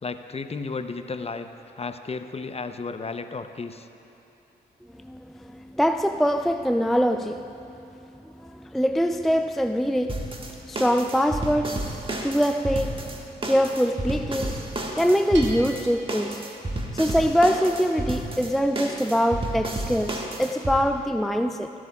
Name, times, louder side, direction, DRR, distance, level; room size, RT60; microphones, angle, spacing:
voice 1, 0.0-1.5 1.8-3.9, left 4 dB, 30° left, 0.7 m, -33 dB
voice 2, 5.0-7.5 8.4-11.9 12.2-16.5 16.9-21.7, equal, ahead, 0.4 m, -24 dB
sound 1, 10.1-20.8, right 1 dB, 25° right, 1.5 m, -32 dB
Bell, 15.3-17.1, right 2 dB, 70° right, 1.5 m, -41 dB
18.5 x 11.0 x 2.4 m
hypercardioid pair, 40°, 20 cm